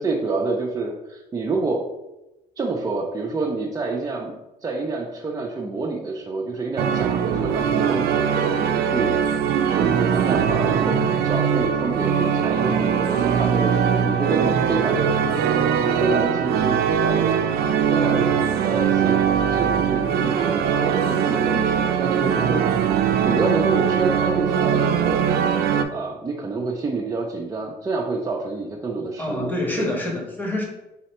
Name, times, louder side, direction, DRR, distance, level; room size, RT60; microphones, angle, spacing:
voice 1, 0.0-1.8 2.6-4.3 4.6-9.1 9.6-17.4 17.9-18.3 18.6-22.8 23.2-25.2 25.9-29.5 29.8-29.9, right 3 dB, 20° right, -2 dB, 0.5 m, -27 dB
organ tutti, 6.8-25.8, right 7 dB, 70° right, 0.4 m, -21 dB
voice 2, 29.2-30.6, left 1 dB, 10° left, 0 dB, 1.1 m, -26 dB
4.2 x 2.7 x 4.2 m, 0.99 s
cardioid pair, 110°, 17 cm